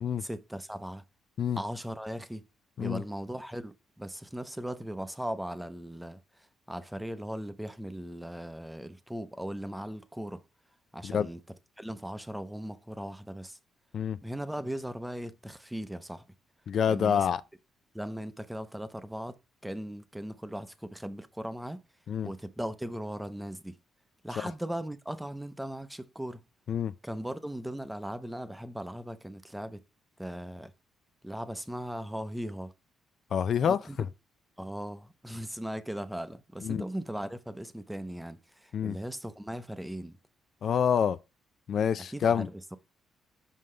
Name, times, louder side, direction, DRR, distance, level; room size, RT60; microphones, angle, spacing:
voice 1, 0.2-1.0 1.6-2.4 2.8-10.4 10.9-11.4 11.8-13.6 14.2-16.2 16.9-17.3 17.9-19.4 19.6-21.8 22.2-23.8 24.2-26.4 27.0-29.8 30.2-30.7 31.2-32.7 33.6-34.0 34.6-40.2 42.1-42.8, equal, 5° right, 0.8 m, -38 dB
voice 2, 16.7-17.4 22.1-22.3 26.7-26.9 33.3-33.8 36.6-36.8 38.7-38.9 40.6-41.2 41.7-42.5, left 8 dB, 60° left, 0.5 m, -27 dB
5.7 x 5.4 x 3.2 m
cardioid pair, 90°, 0 cm